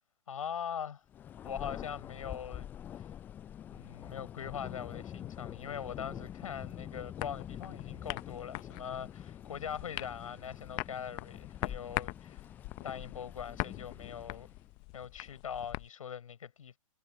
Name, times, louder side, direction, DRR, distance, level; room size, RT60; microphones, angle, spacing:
voice 1, 0.3-1.0 1.4-2.7 3.7-12.5 12.8-14.5 14.9-16.8, left 8 dB, 65° left, 7.0 m, -42 dB
Thunder, 1.1-14.7, left 10 dB, 10° left, 0.3 m, -46 dB
sound 1, 7.2-15.9, left 28 dB, 25° left, 0.7 m, -42 dB
figure-of-eight pair, 125°, 19 cm